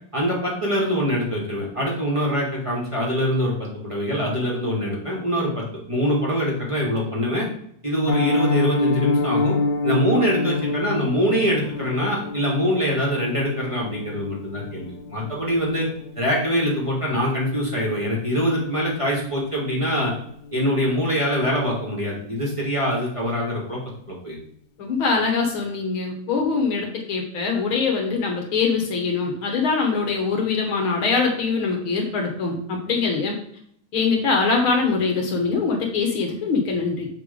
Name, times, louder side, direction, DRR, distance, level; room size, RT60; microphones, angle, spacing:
voice 1, 0.1-7.5 7.8-9.5 9.8-15.9 16.2-20.1 20.5-23.8 24.1-24.4, equal, 15° right, -4 dB, 1.3 m, -24 dB
Piano, 8.1-19.0 19.2-19.4 19.8-19.9 20.3-20.5 20.8-20.9, left 3 dB, 80° left, 1.6 m, -27 dB
voice 2, 24.8-33.4 33.9-37.1, left 4 dB, 55° left, 1 dB, 1.7 m, -23 dB
7.5 x 3.4 x 5.2 m, 0.68 s
omnidirectional pair, 3.3 m